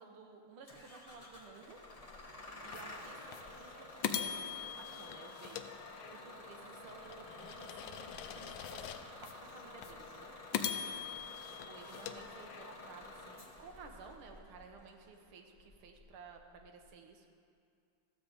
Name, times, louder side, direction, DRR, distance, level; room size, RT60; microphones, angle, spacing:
voice 1, 0.0-1.8 2.6-5.7 6.1-10.3 11.7-17.3, right 5 dB, 75° right, 4 dB, 1.8 m, -55 dB
Bus / Engine starting, 0.7-16.9, left 2 dB, 30° left, 0.6 m, -51 dB
sound 1, 2.7-2.8 3.3-3.4 4.0-6.4 6.9-9.3 9.8-9.9 10.5-12.9, left 9 dB, 75° left, 1.2 m, -41 dB
13.5 x 5.2 x 7.7 m, 2.4 s
omnidirectional pair, 2.4 m